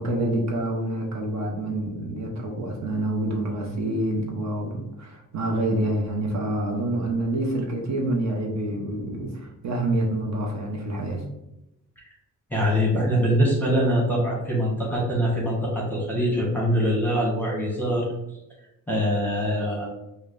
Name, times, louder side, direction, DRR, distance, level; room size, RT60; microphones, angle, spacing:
voice 1, 0.0-11.2, right 1 dB, 55° right, 0 dB, 0.8 m, -27 dB
voice 2, 12.5-18.1 18.9-19.9, equal, 5° left, -3 dB, 1.0 m, -23 dB
5.2 x 2.2 x 2.5 m, 0.89 s
cardioid pair, 130°, 33 cm